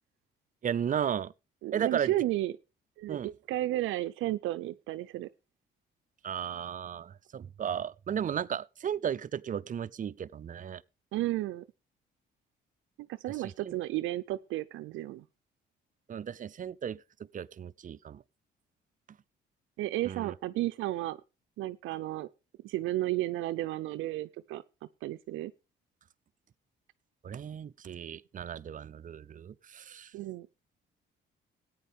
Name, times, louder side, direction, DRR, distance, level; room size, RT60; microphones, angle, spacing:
voice 1, 0.6-1.3 1.7-2.1 3.1-3.3 6.2-10.8 13.7-13.8 16.1-17.0 17.3-18.2 20.0-20.3 27.2-30.1, right 8 dB, 40° right, 0.5 m, -35 dB
voice 2, 1.6-2.5 3.0-5.3 11.1-11.6 13.0-15.2 19.8-21.2 21.6-22.3 22.6-24.6 25.0-25.5 30.1-30.5, right 15 dB, 85° right, 0.5 m, -33 dB
14.5 x 9.3 x 3.5 m
cardioid pair, 90°, 20 cm